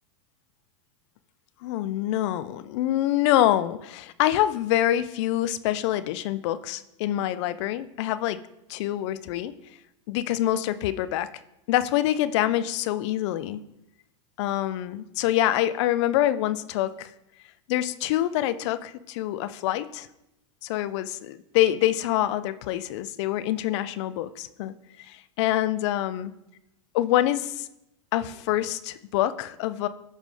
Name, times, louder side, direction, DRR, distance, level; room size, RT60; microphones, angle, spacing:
voice 1, 1.6-8.4 8.7-9.5 10.1-11.3 11.7-13.6 14.4-17.1 17.7-20.1 20.6-24.7 25.1-26.3 26.9-27.7 28.1-29.9, left 13 dB, 60° left, 15 dB, 0.5 m, -26 dB
13.5 x 5.0 x 3.8 m, 0.87 s
hypercardioid pair, 105°, 16 cm